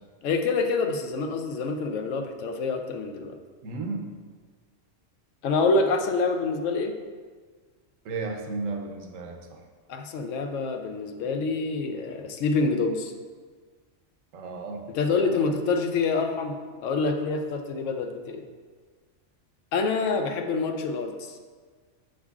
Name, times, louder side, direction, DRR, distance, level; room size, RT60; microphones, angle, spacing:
voice 1, 0.2-3.3 5.4-6.9 9.9-13.1 14.9-18.4 19.7-21.4, left 4 dB, 80° left, 5 dB, 0.9 m, -26 dB
voice 2, 3.6-4.1 8.0-9.6 14.3-15.4, right 3 dB, 90° right, 3 dB, 1.1 m, -34 dB
7.3 x 6.3 x 2.4 m, 1.5 s
omnidirectional pair, 1.3 m